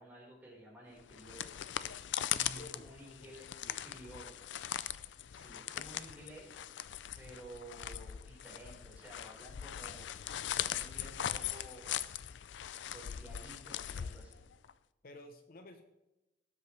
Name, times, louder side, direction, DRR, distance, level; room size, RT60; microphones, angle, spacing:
voice 1, 0.0-1.5 2.5-3.5 3.8-4.3 5.3-6.6 7.2-10.2 10.6-11.9 12.9-14.5, right 1 dB, 10° right, -5 dB, 4.5 m, -53 dB
sound 1, 1.0-14.7, left 10 dB, 80° left, 0.4 m, -40 dB
voice 2, 2.3-2.9 3.2-3.3 3.6-4.0 15.0-15.8, left 1 dB, 55° left, 7 dB, 0.7 m, -51 dB
18.5 x 7.8 x 3.3 m, 0.99 s
head